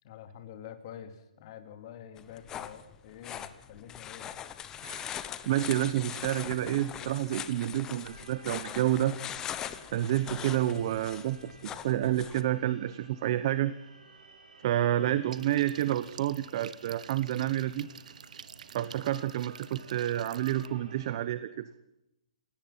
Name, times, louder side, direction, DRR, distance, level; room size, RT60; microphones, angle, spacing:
voice 1, 0.0-4.3 15.0-15.2, left 9 dB, 35° left, 8 dB, 2.7 m, -47 dB
sound 1, 2.2-12.4, left 10 dB, 15° left, 0.9 m, -41 dB
voice 2, 4.8-5.2 5.4-9.1 9.9-13.7 14.6-17.9 18.7-21.7, right 13 dB, 35° right, 15 dB, 0.9 m, -29 dB
sound 2, 7.5-21.1, right 4 dB, 85° right, 6.4 m, -55 dB
sound 3, 15.3-20.7, right 7 dB, 65° right, 1.2 m, -48 dB
28.0 x 17.5 x 5.8 m, 0.86 s
hypercardioid pair, 165°, 4 cm